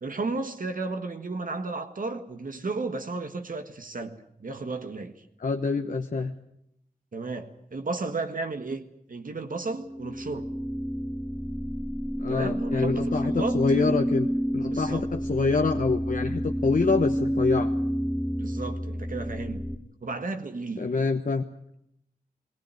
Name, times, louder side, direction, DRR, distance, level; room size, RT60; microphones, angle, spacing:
voice 1, 0.0-5.2 7.1-10.5 12.3-13.6 14.6-15.1 18.4-19.6 20.0-20.9, right 3 dB, 65° right, 1.6 m, -33 dB
voice 2, 5.4-6.3 12.2-17.7 20.8-21.4, left 4 dB, 60° left, 1.0 m, -26 dB
sound 1, 9.6-19.8, equal, 10° right, 1.5 m, -29 dB
19.0 x 18.0 x 9.1 m
wide cardioid pair, 85°, 15 cm